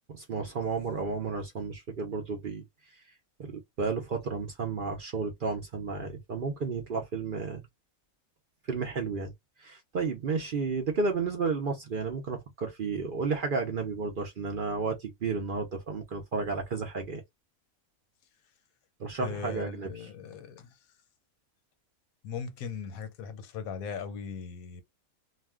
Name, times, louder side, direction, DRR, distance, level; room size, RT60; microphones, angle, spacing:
voice 1, 0.1-3.0 3.4-7.6 8.7-9.3 9.6-17.2 19.0-19.9, right 4 dB, 55° right, 0.5 m, -32 dB
voice 2, 19.2-20.8 22.2-24.8, left 6 dB, 75° left, 1.1 m, -39 dB
2.4 x 2.2 x 3.4 m
omnidirectional pair, 1.5 m